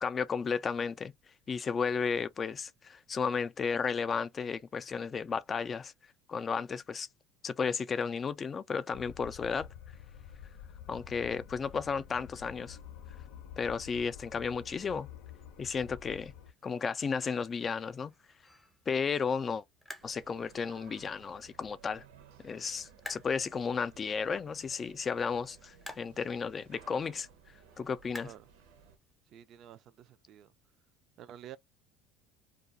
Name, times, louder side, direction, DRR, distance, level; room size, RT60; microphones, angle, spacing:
voice 1, 0.0-1.1 1.5-5.9 6.3-7.1 7.4-9.7 10.9-12.8 13.6-15.1 15.6-16.3 16.6-18.1 18.9-19.6 20.0-22.0 22.4-27.3 27.8-28.3, left 5 dB, 30° left, 0.3 m, -33 dB
sound 1, 8.9-16.5, left 8 dB, 75° left, 0.6 m, -49 dB
sound 2, 16.0-29.2, left 1 dB, 5° left, 0.7 m, -54 dB
sound 3, 20.0-29.0, right 7 dB, 90° right, 0.7 m, -58 dB
voice 2, 29.3-30.5 31.2-31.6, right 11 dB, 50° right, 0.4 m, -50 dB
2.3 x 2.3 x 2.5 m
supercardioid pair, 120°, 0 cm